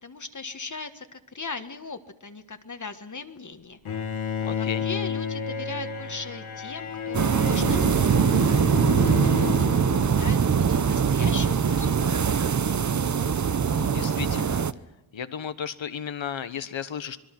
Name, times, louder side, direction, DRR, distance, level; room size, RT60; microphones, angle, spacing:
voice 1, 0.0-3.8 4.5-8.4 9.0-12.4, left 4 dB, 35° left, 8 dB, 1.5 m, -39 dB
Bowed string instrument, 3.8-10.6, left 7 dB, 85° left, 2.6 m, -32 dB
voice 2, 4.4-4.9 13.7-14.6 15.1-17.2, left 8 dB, 70° left, 12 dB, 1.3 m, -34 dB
sound 1, 7.1-14.7, right 6 dB, 35° right, 0.7 m, -22 dB
26.0 x 21.5 x 6.1 m, 1.0 s
wide cardioid pair, 90°, 48 cm